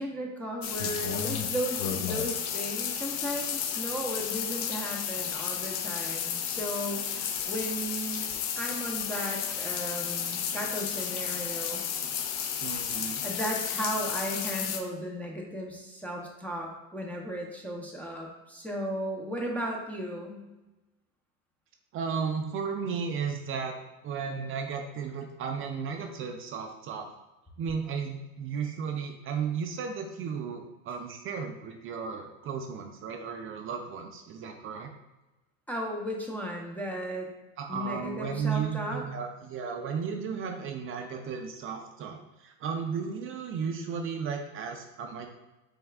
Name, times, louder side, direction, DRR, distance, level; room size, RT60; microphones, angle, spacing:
voice 1, 0.0-8.3 8.6-11.8 12.9-20.4 35.7-37.3 37.7-39.0, equal, 5° left, -2 dB, 0.7 m, -35 dB
sound 1, 0.6-14.8, left 8 dB, 45° left, 0.6 m, -32 dB
voice 2, 12.6-13.2 21.9-23.7 24.0-27.1 27.6-34.9 37.6-45.3, right 6 dB, 30° right, 4 dB, 0.4 m, -34 dB
5.2 x 3.4 x 2.3 m, 1.1 s
supercardioid pair, 105°, 41 cm